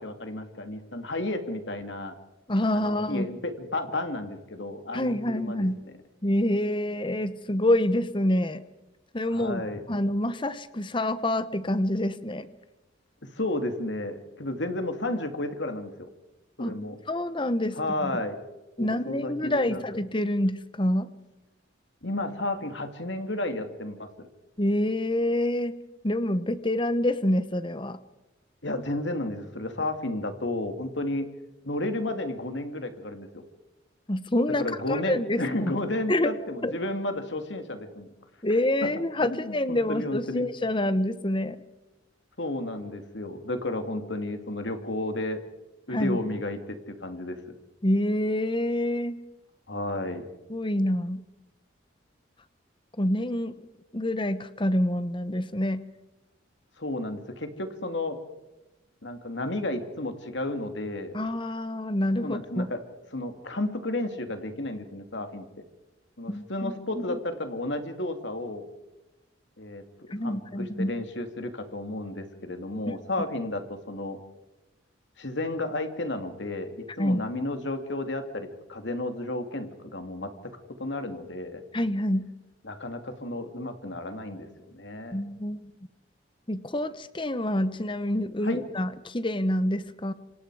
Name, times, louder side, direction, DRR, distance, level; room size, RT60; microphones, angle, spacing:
voice 1, 0.0-2.1 2.7-5.7 9.3-9.8 13.3-15.9 16.6-17.0 17.8-18.4 18.8-19.8 22.0-24.3 28.6-31.3 31.6-33.4 34.6-38.1 38.8-38.9 39.2-40.4 42.4-45.4 45.9-47.4 49.7-50.3 56.8-58.2 59.0-61.1 62.2-62.8 63.1-65.5 66.2-68.6 69.6-74.2 75.2-80.5 80.8-81.6 82.6-84.5 84.7-85.2 88.4-88.6, left 1 dB, 65° left, 7 dB, 2.6 m, -32 dB
voice 2, 2.5-3.3 4.9-5.8 6.2-8.6 9.1-9.6 9.9-12.5 16.6-16.8 17.1-18.1 18.8-21.1 24.6-25.8 26.0-28.0 34.1-35.7 36.1-36.3 36.6-36.7 38.4-41.6 45.9-46.2 47.8-49.2 50.5-51.2 53.0-53.5 53.9-55.8 61.1-62.7 66.3-67.0 70.1-70.9 77.0-77.2 81.7-82.3 85.1-85.7 86.5-90.1, left 1 dB, 25° left, 13 dB, 1.0 m, -27 dB
28.0 x 26.0 x 4.9 m, 1.0 s
head